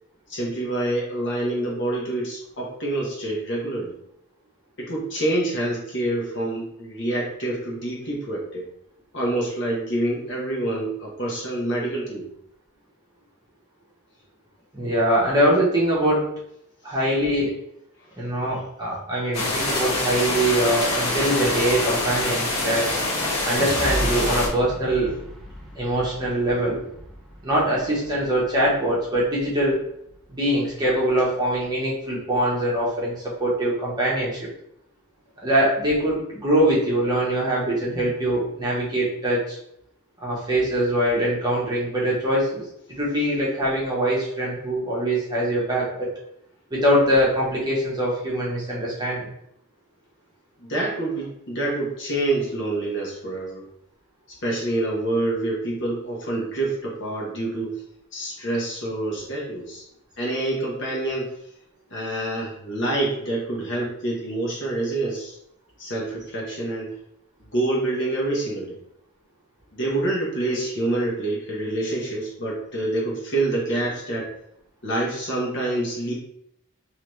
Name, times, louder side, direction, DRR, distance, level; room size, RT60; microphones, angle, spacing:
voice 1, 0.3-4.0 4.8-8.6 9.1-12.3 18.0-18.1 50.6-53.6 54.4-57.8 58.1-59.8 60.2-61.3 61.9-65.4 65.8-66.9 67.5-68.8 69.8-74.3 74.8-76.1, right 2 dB, 55° left, -4 dB, 1.3 m, -27 dB
voice 2, 14.7-16.3 16.8-17.5 18.2-22.9 23.4-25.1 25.7-26.8 27.4-29.8 30.3-34.4 35.4-39.6 40.2-42.6 42.9-46.1 46.7-49.3, right 1 dB, 20° right, -6 dB, 1.1 m, -23 dB
sound 1, 19.3-24.5, left 2 dB, 80° left, 1.4 m, -25 dB
sound 2, 23.5-29.7 30.1-30.7, equal, ahead, 0.5 m, -34 dB
3.8 x 3.1 x 3.2 m, 0.75 s
head